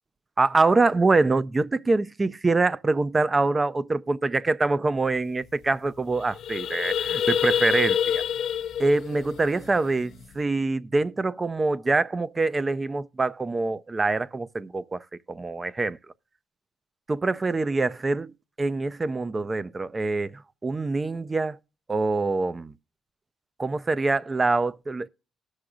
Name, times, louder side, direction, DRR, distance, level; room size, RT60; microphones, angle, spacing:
voice 1, 0.4-8.2 8.8-16.0 17.1-21.6 21.9-22.7 23.6-25.1, right 3 dB, 25° right, 0.5 m, -25 dB
sound 1, 5.1-5.2 5.4-5.7 6.0-10.3, left 9 dB, 75° left, 0.5 m, -27 dB
19.0 x 6.4 x 2.4 m
cardioid pair, 90°, 0 cm